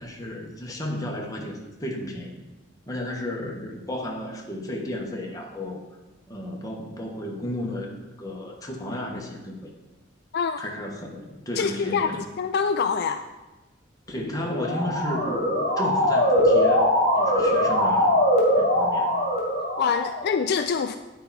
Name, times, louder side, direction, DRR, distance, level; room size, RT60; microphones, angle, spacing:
voice 1, 0.0-2.3 2.9-5.8 6.3-9.7 10.6-12.2 14.1-16.9 17.2-18.1 18.6-19.2, left 1 dB, 20° left, 0 dB, 1.3 m, -33 dB
voice 2, 11.6-13.2 19.8-21.0, left 6 dB, 55° left, 8 dB, 0.3 m, -25 dB
Motor vehicle (road) / Siren, 14.4-20.3, equal, 35° left, 2.1 m, -22 dB
9.7 x 4.6 x 5.7 m, 1.1 s
head